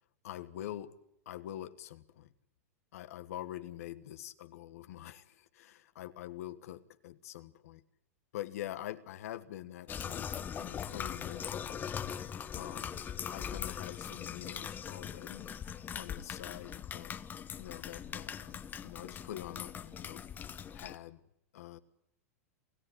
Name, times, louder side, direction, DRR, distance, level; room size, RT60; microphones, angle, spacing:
voice 1, 0.2-0.9 1.2-2.3 2.9-7.8 8.3-11.9 12.5-13.0 13.3-15.5 15.9-17.2 17.6-20.2 20.7-21.2 21.5-21.8, left 13 dB, 75° left, 1.4 m, -45 dB
sound 1, 9.9-21.0, left 8 dB, 25° left, 1.1 m, -41 dB
28.0 x 15.0 x 10.0 m
hypercardioid pair, 130°, 8 cm